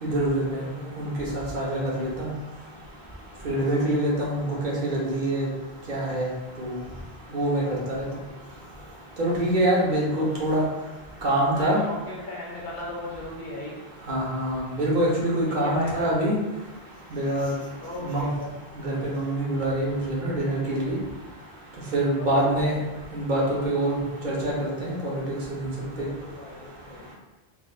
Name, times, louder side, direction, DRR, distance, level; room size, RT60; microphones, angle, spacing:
voice 1, 0.0-0.6 1.0-2.3 3.4-5.5 5.9-6.3 6.6-6.8 7.3-8.0 9.2-10.6 11.2-11.8 14.1-16.3 17.1-17.5 18.0-18.3 18.8-21.0 21.9-22.7 23.1-24.0 24.2-25.1 25.5-25.7, right 1 dB, 50° right, -5 dB, 0.8 m, -25 dB
voice 2, 0.5-1.1 3.5-3.9 7.3-7.8 9.9-10.5 11.6-13.8 15.4-16.1 17.8-18.5 22.2-22.8 25.8-27.1, left 2 dB, 55° left, -3 dB, 0.6 m, -37 dB
3.5 x 2.4 x 2.4 m, 1.0 s
omnidirectional pair, 1.1 m